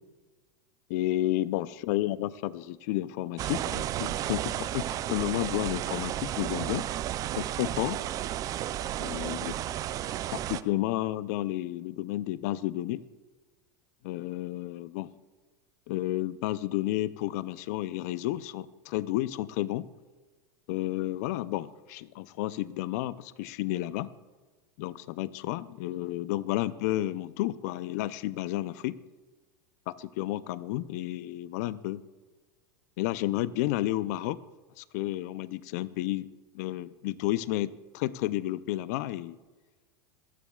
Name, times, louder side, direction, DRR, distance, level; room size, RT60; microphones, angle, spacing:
voice 1, 0.9-6.8 7.4-8.0 9.0-9.5 10.3-13.0 14.0-15.1 15.9-19.9 20.7-24.1 24.8-29.0 29.9-32.0 33.0-34.4 34.8-36.3 36.5-39.4, left 15 dB, 65° left, 17 dB, 0.5 m, -31 dB
sound 1, 3.4-10.6, right 12 dB, 40° right, 0.5 m, -33 dB
26.5 x 10.0 x 2.4 m, 1.3 s
hypercardioid pair, 105°, 10 cm